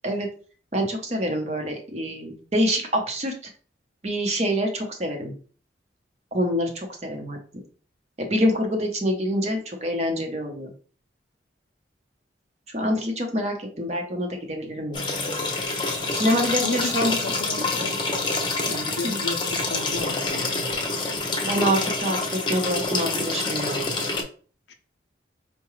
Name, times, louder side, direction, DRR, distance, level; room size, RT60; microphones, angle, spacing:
voice 1, 0.7-3.3 4.0-5.3 6.3-7.4 8.2-10.7 12.7-15.1 16.1-17.2 17.7-17.8 19.0-19.2 21.4-24.0, equal, 35° right, 3 dB, 0.7 m, -26 dB
sound 1, 14.9-24.2, left 3 dB, 25° left, 0.6 m, -27 dB
voice 2, 16.6-17.9 18.6-20.7 22.2-22.3 24.7-24.8, left 3 dB, 70° left, 6 dB, 0.5 m, -33 dB
4.7 x 2.2 x 3.0 m, 0.41 s
head